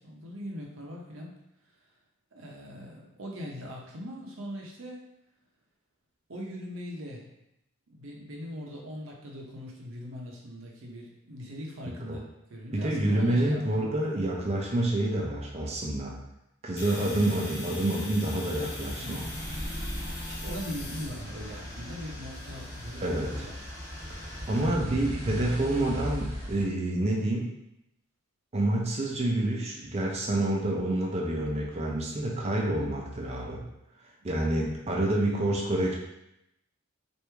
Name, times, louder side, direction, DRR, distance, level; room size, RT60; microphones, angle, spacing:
voice 1, 0.0-1.3 2.3-5.0 6.3-7.3 7.9-12.2 12.5-13.9 19.0-19.3 20.0-23.6 34.2-34.3, equal, 75° right, -1 dB, 0.7 m, -41 dB
voice 2, 12.7-16.1 16.6-19.3 23.0-23.5 24.1-27.5 28.5-33.6 34.2-35.9, right 1 dB, 30° right, -2 dB, 0.5 m, -28 dB
Domestic sounds home sounds, 16.8-24.6, left 2 dB, 55° left, 0.9 m, -43 dB
sound 1, 18.5-26.6, equal, 15° right, 0.9 m, -38 dB
3.1 x 2.6 x 3.3 m, 0.85 s
head